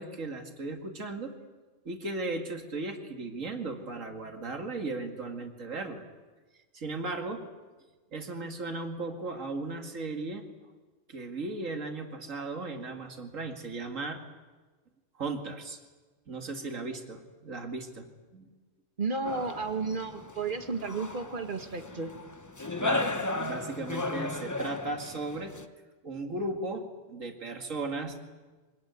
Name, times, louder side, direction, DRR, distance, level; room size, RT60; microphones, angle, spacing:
voice 1, 0.0-1.4 1.8-6.0 6.7-7.5 8.1-10.5 11.1-14.2 15.2-15.8 16.3-18.5 22.8-25.6 26.0-28.2, right 3 dB, 85° right, 4 dB, 2.5 m, -36 dB
voice 2, 19.0-22.1, right 4 dB, 40° right, 7 dB, 1.7 m, -33 dB
sound 1, 19.2-25.6, left 2 dB, 15° left, 0.9 m, -35 dB
25.0 x 19.0 x 9.4 m, 1.3 s
omnidirectional pair, 1.3 m